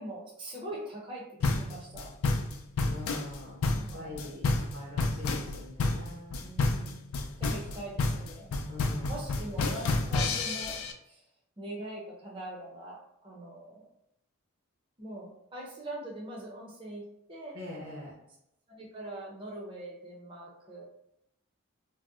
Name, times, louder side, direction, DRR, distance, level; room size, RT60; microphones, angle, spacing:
voice 1, 0.0-2.1 3.8-4.3 6.4-7.0 7.4-8.5 9.0-11.3 11.6-13.9 15.0-17.6 18.7-20.8, right 1 dB, 25° right, -4 dB, 0.5 m, -42 dB
sound 1, 1.4-10.9, left 3 dB, 75° left, 0.4 m, -29 dB
voice 2, 2.8-6.4 8.7-9.2 17.5-18.1, left 1 dB, 65° right, -7 dB, 0.8 m, -43 dB
2.6 x 2.0 x 3.5 m, 0.80 s
head